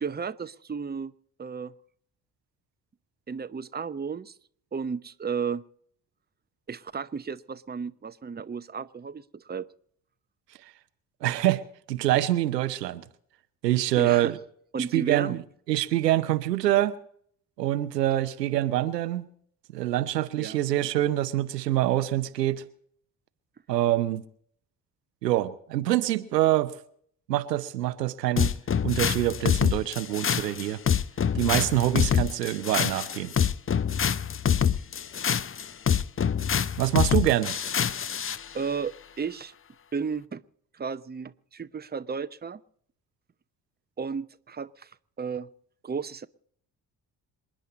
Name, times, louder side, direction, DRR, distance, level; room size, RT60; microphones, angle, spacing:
voice 1, 0.0-1.1 1.4-1.7 3.3-4.3 4.7-5.6 6.7-9.7 13.9-14.3 14.7-15.4 20.4-20.6 38.5-39.5 39.9-40.4 40.7-42.6 44.0-44.9 45.2-45.5 45.8-46.3, right 5 dB, 20° right, 0.9 m, -33 dB
voice 2, 11.2-11.6 11.9-13.0 13.6-14.4 14.9-15.4 15.7-17.0 17.6-19.2 19.7-22.6 23.7-24.2 25.2-26.7 27.3-28.5 28.8-30.8 31.3-33.3 36.8-37.6, right 14 dB, 90° right, 0.8 m, -25 dB
sound 1, 28.4-38.4, left 8 dB, 25° left, 0.7 m, -25 dB
27.5 x 10.0 x 4.1 m
hypercardioid pair, 45°, 47 cm